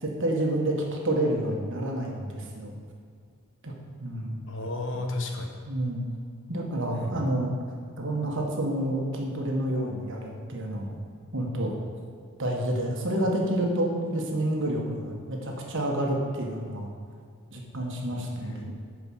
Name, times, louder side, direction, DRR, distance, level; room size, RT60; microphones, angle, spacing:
voice 1, 0.0-2.8 3.6-3.7 4.0-4.4 5.7-6.0 6.5-7.5 8.0-11.0 11.3-11.7 12.4-16.9 17.5-18.7, right 1 dB, 60° right, 0 dB, 1.5 m, -29 dB
voice 2, 4.5-5.5 6.9-7.3 18.4-18.7, left 2 dB, 60° left, 3 dB, 1.1 m, -33 dB
9.5 x 4.9 x 6.3 m, 2.2 s
head